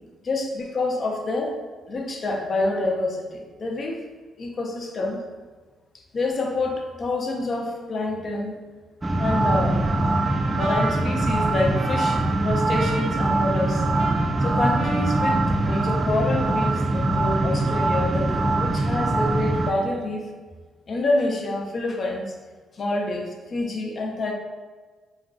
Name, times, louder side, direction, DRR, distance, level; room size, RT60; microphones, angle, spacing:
voice 1, 0.2-1.6 1.9-4.0 4.4-5.2 6.1-8.6 9.2-9.8 10.6-13.9 14.4-20.2 20.9-22.3 22.7-24.3, left 2 dB, 45° left, 1 dB, 0.5 m, -27 dB
sound 1, 9.0-19.7, right 2 dB, 15° right, 0.3 m, -23 dB
Trumpet, 9.8-16.4, right 1 dB, 60° right, 0.7 m, -37 dB
2.4 x 2.2 x 3.6 m, 1.4 s
cardioid pair, 90°, 0 cm